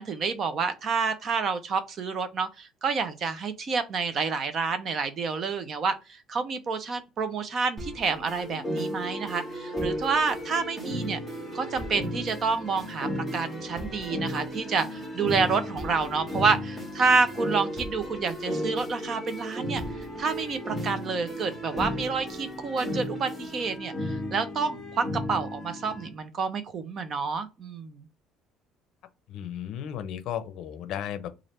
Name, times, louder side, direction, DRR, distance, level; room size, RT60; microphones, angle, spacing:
voice 1, 0.0-11.2 11.5-19.8 20.2-28.1, right 5 dB, 40° right, 0.6 m, -28 dB
sound 1, 7.8-23.8, right 1 dB, 15° right, 1.1 m, -41 dB
sound 2, 8.6-26.1, left 1 dB, 10° left, 1.7 m, -35 dB
voice 2, 29.3-31.3, left 10 dB, 60° left, 0.6 m, -34 dB
3.2 x 2.5 x 4.3 m
cardioid pair, 135°, 0 cm